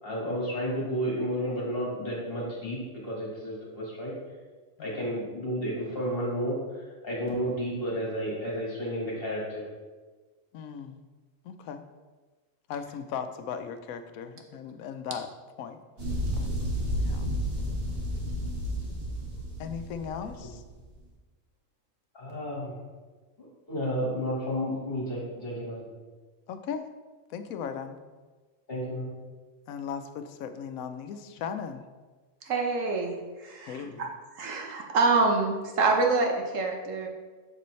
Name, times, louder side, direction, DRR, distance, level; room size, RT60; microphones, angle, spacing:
voice 1, 0.0-4.1 4.8-9.6 22.1-22.8 23.7-25.9 28.7-29.1, equal, 45° left, -5 dB, 1.8 m, -32 dB
voice 2, 4.8-5.2 10.5-11.0 11.4-11.8 12.7-15.3 15.6-15.8 16.3-16.5 17.0-17.3 19.6-20.6 26.5-26.9 27.3-28.0 29.7-31.8 33.7-34.1, left 7 dB, 85° left, 9 dB, 1.0 m, -37 dB
sound 1, 16.0-20.8, equal, 45° right, 1.8 m, -31 dB
voice 3, 32.4-33.1 33.4-33.9 34.4-37.1, right 3 dB, 70° right, 1 dB, 1.3 m, -26 dB
6.7 x 6.3 x 3.2 m, 1.3 s
omnidirectional pair, 1.4 m